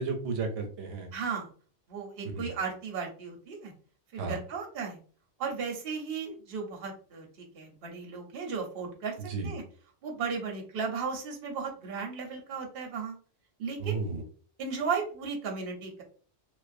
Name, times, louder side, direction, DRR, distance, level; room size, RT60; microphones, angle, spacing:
voice 1, 0.0-1.1 2.2-2.5 4.2-4.4 9.3-9.5 13.8-14.2, right 4 dB, 85° right, 4 dB, 0.9 m, -33 dB
voice 2, 1.1-1.5 1.9-3.7 4.1-5.0 5.4-9.6 10.0-13.2 13.6-14.0 14.6-16.0, right 5 dB, 60° right, 1 dB, 0.8 m, -35 dB
2.3 x 2.2 x 2.5 m, 0.43 s
omnidirectional pair, 1.2 m